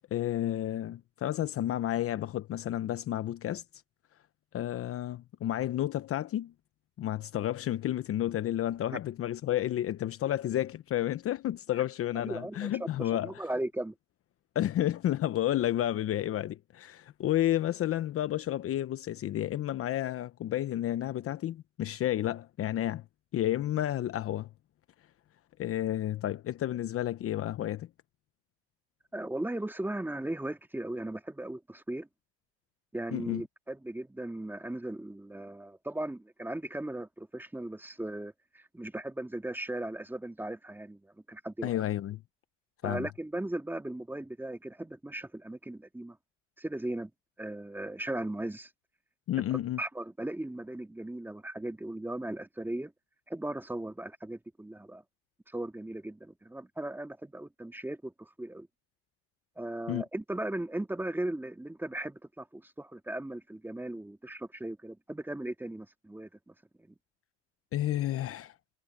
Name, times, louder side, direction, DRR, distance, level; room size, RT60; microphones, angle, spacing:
voice 1, 0.1-3.6 4.5-6.5 7.0-13.3 14.5-23.0 23.3-24.5 25.6-27.9 33.1-33.4 41.6-42.2 42.8-43.1 49.3-49.8 59.9-60.0 67.7-68.5, left 12 dB, 40° left, 1.0 m, -31 dB
voice 2, 12.2-13.9 29.1-32.1 32.9-41.7 42.8-46.2 46.6-47.1 47.4-48.7 49.8-52.9 53.3-55.0 55.5-58.7 59.6-67.0, right 1 dB, 5° right, 1.9 m, -37 dB
supercardioid pair, 105°, 35 cm